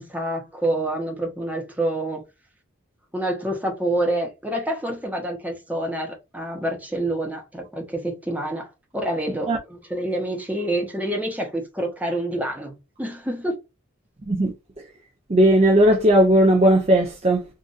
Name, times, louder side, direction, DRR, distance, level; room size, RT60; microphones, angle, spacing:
voice 1, 0.0-2.2 3.1-13.5, right 1 dB, 10° right, 0.9 m, -27 dB
voice 2, 15.3-17.4, right 1 dB, 30° right, 0.5 m, -17 dB
3.8 x 2.4 x 2.5 m
head